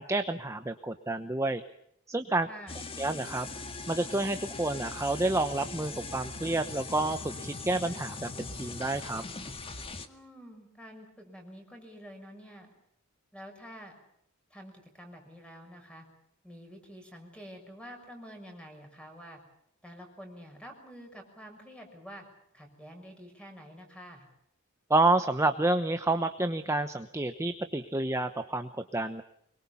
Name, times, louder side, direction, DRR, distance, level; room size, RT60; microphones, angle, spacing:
voice 1, 0.0-1.6 2.1-2.5 3.0-3.5 3.9-9.2 24.9-29.2, right 2 dB, 15° right, 8 dB, 0.9 m, -29 dB
voice 2, 2.5-2.8 10.0-12.7 13.3-13.9 14.5-16.1 16.4-19.4 19.8-22.3 22.5-24.3, equal, 5° left, 4 dB, 6.5 m, -48 dB
sound 1, 2.7-10.1, left 3 dB, 25° left, 1.8 m, -40 dB
25.0 x 22.5 x 7.1 m, 0.73 s
head